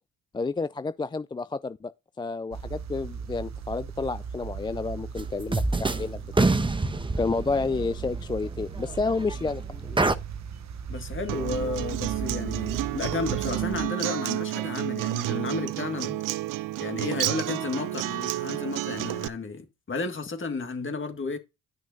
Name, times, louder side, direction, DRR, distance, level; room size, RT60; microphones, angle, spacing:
voice 1, 0.3-1.9 2.2-6.5 7.2-10.0 16.1-16.2, left 4 dB, 15° left, 0.3 m, -30 dB
sound 1, 2.5-13.9, right 6 dB, 55° right, 1.0 m, -37 dB
sound 2, 5.2-5.3 5.5-6.1 6.3-9.5 10.0-10.2, right 2 dB, 15° right, 0.9 m, -26 dB
voice 2, 10.9-16.1 16.8-21.4, left 3 dB, 40° left, 1.9 m, -32 dB
Acoustic guitar, 11.3-19.3, right 16 dB, 75° right, 0.5 m, -30 dB
11.0 x 6.1 x 2.7 m
supercardioid pair, 55°, 32 cm